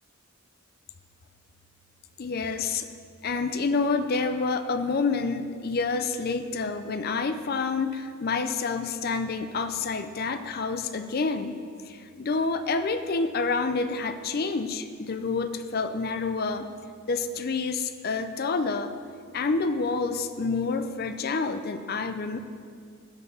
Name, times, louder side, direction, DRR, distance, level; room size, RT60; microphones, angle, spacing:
voice 1, 2.2-2.9 3.2-11.6 11.8-16.7 17.1-18.9 19.3-22.4, left 4 dB, 45° left, 9 dB, 0.5 m, -28 dB
12.0 x 4.4 x 6.9 m, 2.2 s
head